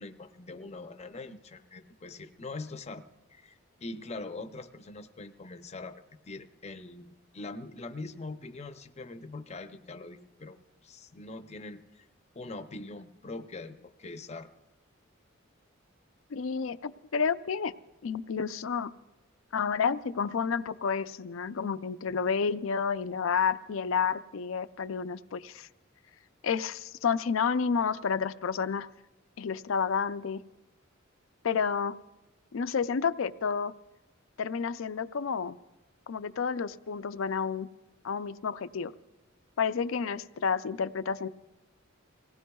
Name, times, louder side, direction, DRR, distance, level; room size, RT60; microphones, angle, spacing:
voice 1, 0.0-3.0 3.3-10.6 10.8-12.1 12.3-14.5, left 3 dB, 35° left, 8 dB, 0.6 m, -43 dB
voice 2, 16.3-17.7 18.0-18.9 19.5-25.7 26.4-28.9 29.4-30.4 31.4-32.0 32.5-33.7 34.4-35.6 36.1-37.7 38.0-38.9 39.6-41.3, left 6 dB, 75° left, 13 dB, 0.5 m, -30 dB
26.5 x 18.0 x 2.3 m, 1.0 s
head